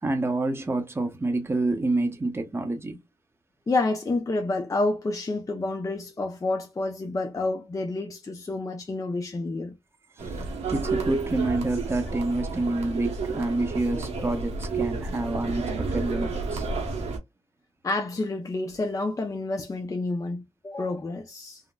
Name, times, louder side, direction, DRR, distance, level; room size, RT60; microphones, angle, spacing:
voice 1, 0.0-3.0 10.2-10.4 10.7-16.7, right 2 dB, 20° right, 0.7 m, -28 dB
voice 2, 3.7-9.8 17.8-21.6, left 2 dB, 30° left, 0.6 m, -29 dB
sound 1, 10.2-17.2, right 4 dB, 85° right, 1.0 m, -31 dB
3.7 x 2.1 x 2.3 m
cardioid pair, 70°, 11 cm